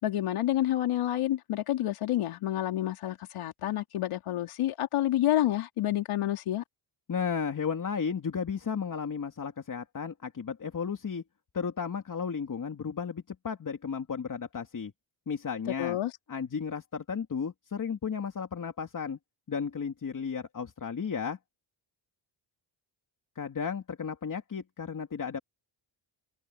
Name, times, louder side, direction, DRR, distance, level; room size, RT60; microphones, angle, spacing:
voice 1, 0.0-6.6 15.8-16.1, left 13 dB, 90° left, 3.0 m, -29 dB
voice 2, 7.1-11.2 11.5-14.9 15.3-16.0 16.3-19.2 19.5-21.4 23.4-25.4, left 6 dB, 40° left, 2.9 m, -34 dB
cardioid pair, 115°, 50 cm